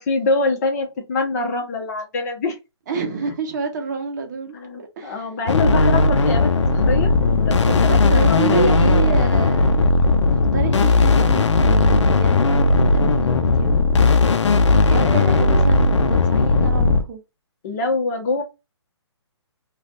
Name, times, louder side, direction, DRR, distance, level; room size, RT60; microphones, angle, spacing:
voice 1, 0.0-2.6 4.5-7.1 7.5-9.4 15.0-15.7 17.6-18.4, left 3 dB, 35° left, 1.0 m, -25 dB
voice 2, 2.9-5.3 7.7-9.9 10.3-13.7 14.9-17.2, right 5 dB, 40° right, 0.8 m, -29 dB
sound 1, 5.5-17.0, left 3 dB, 90° left, 0.5 m, -17 dB
3.2 x 2.4 x 2.5 m
hypercardioid pair, 155°, 15 cm